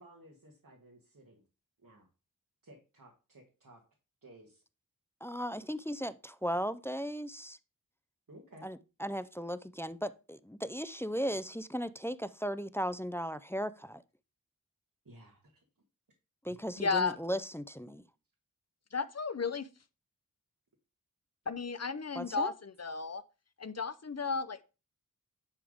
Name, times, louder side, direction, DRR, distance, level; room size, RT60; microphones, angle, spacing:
voice 1, 0.0-1.4 1.8-2.1 2.6-3.8 4.2-4.6 8.3-8.7 15.1-15.5, right 1 dB, 65° right, 1.6 m, -56 dB
voice 2, 5.2-7.6 8.6-14.0 16.4-18.0 22.2-22.5, equal, 5° left, 0.4 m, -36 dB
voice 3, 16.8-17.2 18.9-19.7 21.5-23.2 23.6-24.6, left 5 dB, 45° left, 0.6 m, -33 dB
10.0 x 3.5 x 5.0 m
wide cardioid pair, 65°, 35 cm